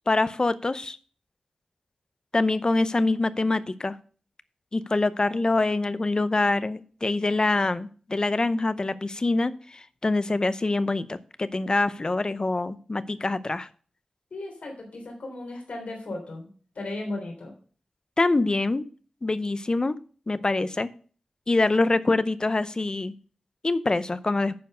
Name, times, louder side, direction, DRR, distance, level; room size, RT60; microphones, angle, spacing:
voice 1, 0.1-1.0 2.3-4.0 4.7-13.7 18.2-18.8 19.2-20.0 20.3-20.9 21.5-23.1 23.6-24.5, left 2 dB, 35° left, 14 dB, 0.6 m, -25 dB
voice 2, 14.3-16.5 16.8-17.5, left 2 dB, 80° left, 0 dB, 3.4 m, -36 dB
10.5 x 4.6 x 6.6 m, 0.42 s
wide cardioid pair, 80°, 2 cm